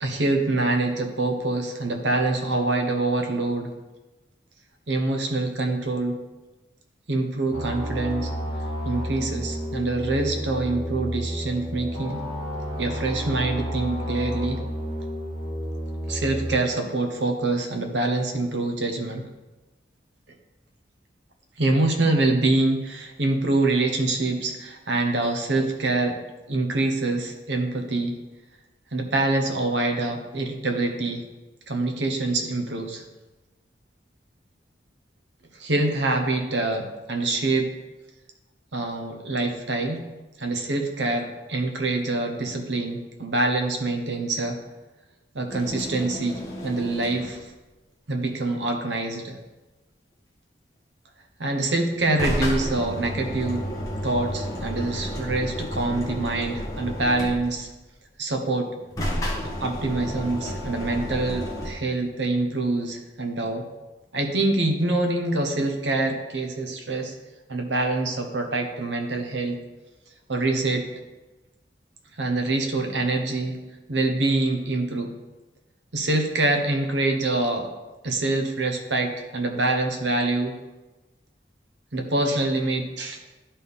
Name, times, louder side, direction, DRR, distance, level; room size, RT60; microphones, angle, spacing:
voice 1, 0.0-3.7 4.9-6.2 7.1-8.3 8.8-12.2 12.8-14.6 16.1-19.2 21.6-26.2 26.5-28.2 28.9-31.3 31.7-33.0 35.5-37.7 38.7-40.1 40.4-44.6 45.3-47.5 48.1-49.4 51.4-53.7 54.0-57.7 58.2-58.7 59.4-63.7 64.1-67.1 67.5-69.6 70.3-70.9 72.2-73.6 73.9-75.1 75.9-77.7 78.0-80.5 81.9-83.2, right 2 dB, 80° right, 4 dB, 1.0 m, -25 dB
sound 1, 7.5-16.6, equal, 30° right, 1.5 m, -31 dB
sound 2, 45.5-47.5 51.9-57.7 58.8-61.7, equal, 20° left, 1.2 m, -31 dB
11.0 x 4.2 x 3.6 m, 1.1 s
head